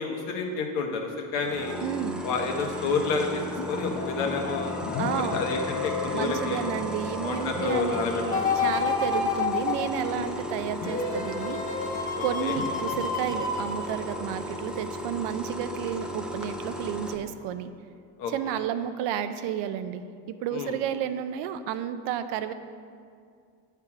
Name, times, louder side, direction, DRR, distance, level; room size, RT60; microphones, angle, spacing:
voice 1, 0.0-1.8 2.2-4.7 5.1-6.7 7.2-8.5 10.1-10.3 12.2-12.6 18.2-18.6 20.5-20.7, left 4 dB, 85° left, 2 dB, 1.1 m, -30 dB
sound 1, 1.4-17.1, equal, ahead, 0.5 m, -36 dB
voice 2, 1.8-2.3 5.0-5.4 6.1-11.6 12.2-17.7 18.3-20.0 20.3-22.5, right 9 dB, 80° right, 10 dB, 0.6 m, -31 dB
sound 2, 3.6-15.3, left 6 dB, 60° left, 0.7 m, -37 dB
sound 3, 8.3-14.5 15.0-15.1, left 4 dB, 20° left, 1.1 m, -30 dB
8.4 x 3.4 x 5.8 m, 2.2 s
supercardioid pair, 95°, 42 cm